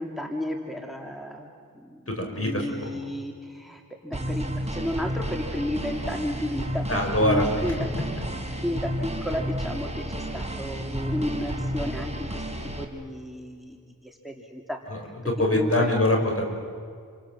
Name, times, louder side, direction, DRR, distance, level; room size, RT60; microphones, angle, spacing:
voice 1, 0.0-2.0 2.4-7.8 8.6-12.4 12.8-15.1 15.5-15.9, left 1 dB, ahead, 2 dB, 2.8 m, -32 dB
voice 2, 2.1-2.7 2.9-3.0 6.9-7.8 14.9-15.0 15.2-16.4, left 1 dB, 40° left, 2 dB, 5.7 m, -24 dB
sound 1, 4.1-12.8, equal, 20° right, 3.4 m, -31 dB
30.0 x 25.5 x 7.7 m, 2.1 s
wide cardioid pair, 45°, 35 cm